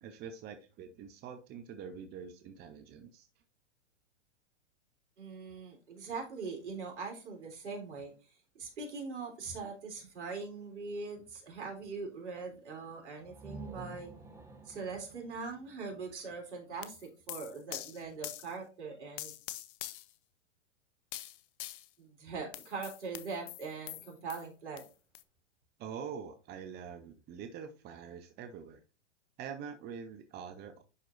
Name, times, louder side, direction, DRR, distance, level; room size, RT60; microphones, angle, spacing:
voice 1, 0.0-3.3 25.8-28.8 29.4-30.8, right 7 dB, 30° right, 7 dB, 0.8 m, -45 dB
voice 2, 5.2-8.1 8.6-14.1 14.7-19.3 22.0-24.8, right 4 dB, 70° right, 1 dB, 3.5 m, -42 dB
sound 1, 13.2-16.9, right 3 dB, 10° right, 1.2 m, -50 dB
sound 2, 16.8-18.5 19.2-20.1 21.1-21.9 22.5-24.4 24.8-24.9 25.1-25.2, left 15 dB, 50° left, 0.8 m, -44 dB
11.0 x 4.5 x 2.6 m, 0.32 s
hypercardioid pair, 110°, 35 cm